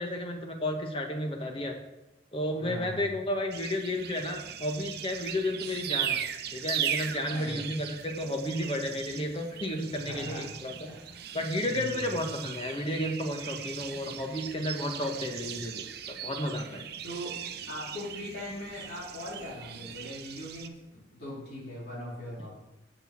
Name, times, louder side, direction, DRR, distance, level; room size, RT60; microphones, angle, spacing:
voice 1, 0.0-1.7 2.3-6.2 6.5-10.7 11.3-16.8, left 1 dB, 30° left, 4 dB, 1.0 m, -32 dB
voice 2, 2.6-3.2 7.3-7.6 10.0-10.5 10.8-11.3 11.7-12.2 17.0-17.3 17.7-22.5, left 1 dB, 55° left, -7 dB, 3.2 m, -40 dB
sound 1, 3.5-20.7, right 9 dB, 55° right, 0.6 m, -38 dB
6.4 x 6.0 x 7.3 m, 0.96 s
head